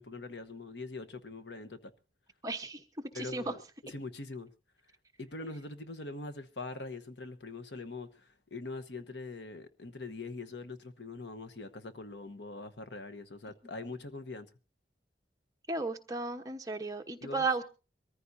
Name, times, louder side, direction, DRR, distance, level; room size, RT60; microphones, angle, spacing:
voice 1, 0.0-1.9 3.1-4.5 5.2-14.5 17.2-17.5, left 3 dB, 70° left, 1.2 m, -43 dB
voice 2, 2.4-2.8 3.1-3.5 15.7-17.6, right 3 dB, 20° right, 1.1 m, -34 dB
23.0 x 14.5 x 2.7 m
head